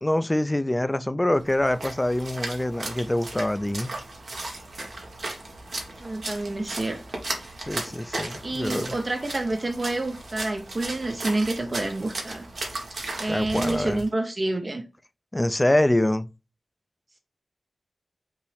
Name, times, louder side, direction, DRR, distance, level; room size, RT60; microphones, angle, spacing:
voice 1, 0.0-3.9 7.6-8.9 13.3-14.0 15.3-16.3, left 1 dB, 20° left, 0.3 m, -25 dB
Splash splatter, 1.3-14.1, right 2 dB, 70° right, 1.1 m, -36 dB
voice 2, 6.0-7.0 8.4-12.5 13.2-14.8, right 2 dB, 45° right, 0.6 m, -28 dB
5.5 x 2.0 x 4.8 m
wide cardioid pair, 65°, 0 cm